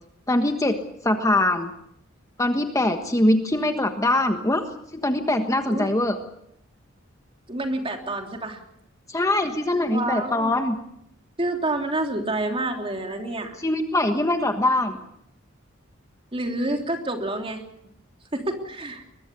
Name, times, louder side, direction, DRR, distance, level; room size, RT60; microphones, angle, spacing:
voice 1, 0.3-0.8 1.0-1.7 2.4-4.6 4.9-6.2 9.1-10.8 13.6-15.0, left 1 dB, 15° left, 6 dB, 1.4 m, -22 dB
voice 2, 7.5-8.6 9.9-10.6 11.4-13.6 16.3-17.6 18.3-19.0, right 2 dB, 25° right, 4 dB, 3.2 m, -28 dB
22.5 x 21.5 x 6.9 m, 0.75 s
head